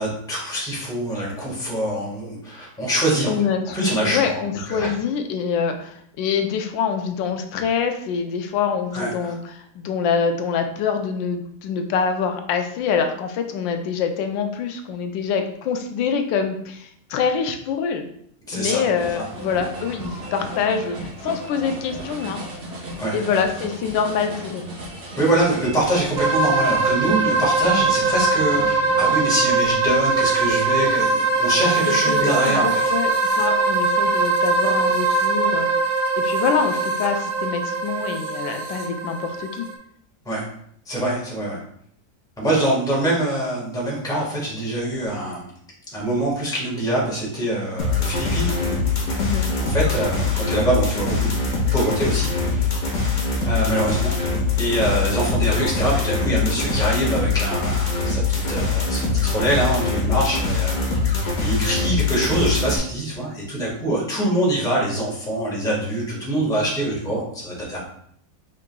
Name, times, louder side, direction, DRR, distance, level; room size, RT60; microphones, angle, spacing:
voice 1, 0.0-3.3 3.7-4.4 4.7-4.9 8.9-9.3 18.5-18.8 19.1-19.2 23.0-23.2 25.2-32.9 40.2-40.5 40.9-41.6 42.4-45.5 45.9-48.6 49.6-51.4 51.7-52.7 53.4-54.1 54.6-60.8 61.2-67.8, right 1 dB, ahead, -5 dB, 1.0 m, -24 dB
voice 2, 3.3-3.8 4.0-18.1 18.5-22.4 23.1-24.6 31.9-35.8 36.2-39.7 49.2-49.5, left 6 dB, 90° left, 5 dB, 1.3 m, -25 dB
sound 1, 18.9-29.2, right 1 dB, 45° right, 0.9 m, -36 dB
sound 2, 26.2-39.7, right 3 dB, 70° right, 1.1 m, -21 dB
sound 3, 47.8-62.8, left 4 dB, 55° left, 1.4 m, -23 dB
5.1 x 3.7 x 2.2 m, 0.67 s
omnidirectional pair, 2.0 m